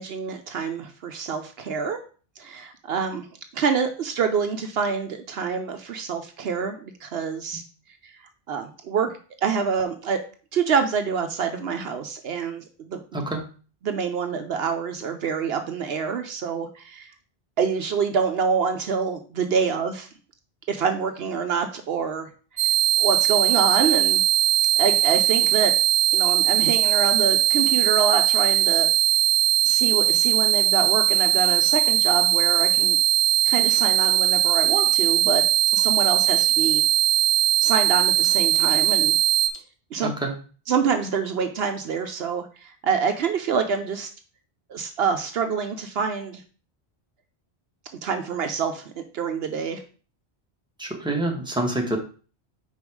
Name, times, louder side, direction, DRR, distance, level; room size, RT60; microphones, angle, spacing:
voice 1, 0.0-2.0 2.4-3.3 3.5-7.6 8.0-8.1 8.5-9.1 9.4-10.2 10.5-13.2 13.8-17.1 17.6-20.1 20.7-22.3 23.0-24.2 24.8-25.7 26.1-28.9 29.6-33.0 33.5-35.4 35.7-36.8 37.6-39.1 39.9-40.1 40.7-44.1 44.7-46.4 48.0-48.8 49.1-49.8, right 6 dB, 70° right, 7 dB, 0.9 m, -26 dB
sound 1, 22.6-39.5, right 12 dB, 90° right, 0.9 m, -20 dB
voice 2, 50.8-52.0, right 1 dB, 5° right, 1 dB, 1.2 m, -26 dB
5.2 x 4.5 x 4.7 m, 0.38 s
omnidirectional pair, 1.1 m